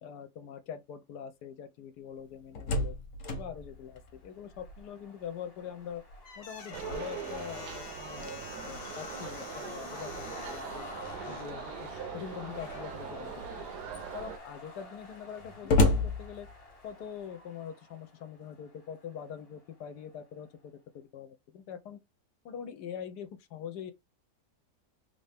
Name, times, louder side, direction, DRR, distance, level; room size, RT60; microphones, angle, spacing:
voice 1, 0.0-2.9 3.3-6.0 6.4-10.9 11.3-13.3 14.1-16.5 16.8-22.0 22.4-23.9, left 8 dB, 75° left, 1.2 m, -43 dB
Slam, 2.2-5.0 5.4-5.5 5.9-11.6 12.5-13.0 13.6-13.7 13.9-17.0, left 2 dB, 55° left, 1.3 m, -34 dB
sound 1, 3.8-20.5, left 2 dB, 25° left, 0.9 m, -51 dB
sound 2, 6.7-14.4, right 8 dB, 75° right, 1.2 m, -42 dB
3.5 x 2.7 x 3.3 m
omnidirectional pair, 1.8 m